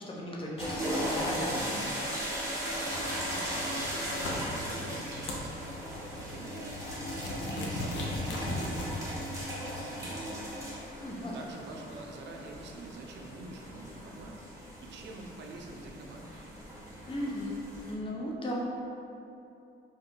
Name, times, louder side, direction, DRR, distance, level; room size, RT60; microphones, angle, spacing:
voice 1, 0.1-1.9 11.0-11.3 17.1-17.6 17.8-18.5, left 1 dB, 25° left, -3 dB, 0.6 m, -36 dB
sound 1, 0.6-17.9, equal, 15° right, 0.9 m, -37 dB
voice 2, 2.6-5.6 5.9-6.8 7.1-10.5 11.3-16.4, right 3 dB, 65° right, 1 dB, 0.4 m, -47 dB
sound 2, 2.9-9.4, left 2 dB, 65° left, 0.5 m, -39 dB
2.6 x 2.3 x 3.7 m, 2.8 s
cardioid pair, 90°, 20 cm